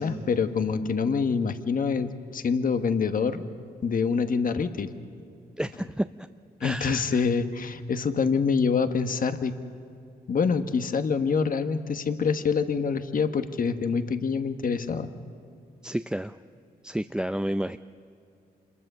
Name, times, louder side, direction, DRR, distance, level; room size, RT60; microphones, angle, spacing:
voice 1, 0.0-3.4 3.8-5.0 6.6-9.5 10.3-15.1, left 5 dB, 55° left, 9 dB, 1.3 m, -26 dB
voice 2, 5.6-6.1 6.6-7.2 15.8-16.4 16.8-17.8, equal, 5° right, 10 dB, 0.5 m, -30 dB
26.5 x 21.0 x 6.8 m, 2.6 s
cardioid pair, 70°, 17 cm